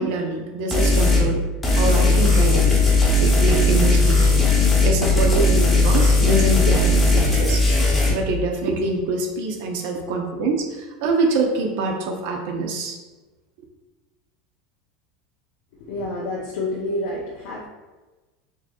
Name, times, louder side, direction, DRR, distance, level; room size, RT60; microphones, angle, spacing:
voice 1, 0.0-1.4 1.8-2.8 3.2-4.4 4.8-7.6 8.1-13.0, right 3 dB, 65° right, 1 dB, 0.7 m, -25 dB
sound 1, 0.7-1.2 1.6-8.1, left 2 dB, 15° left, 0.9 m, -17 dB
voice 2, 15.9-17.7, left 1 dB, 70° left, -4 dB, 0.7 m, -28 dB
4.6 x 2.9 x 2.3 m, 1.2 s
supercardioid pair, 155°, 0 cm